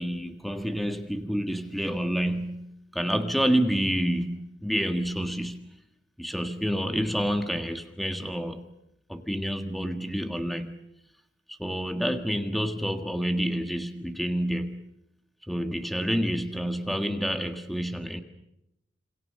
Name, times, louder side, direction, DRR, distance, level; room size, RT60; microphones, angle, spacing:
voice 1, 0.0-5.6 6.2-8.7 9.1-10.9 11.5-14.8 15.5-18.2, equal, ahead, 1.6 m, -28 dB
27.5 x 26.0 x 6.6 m
head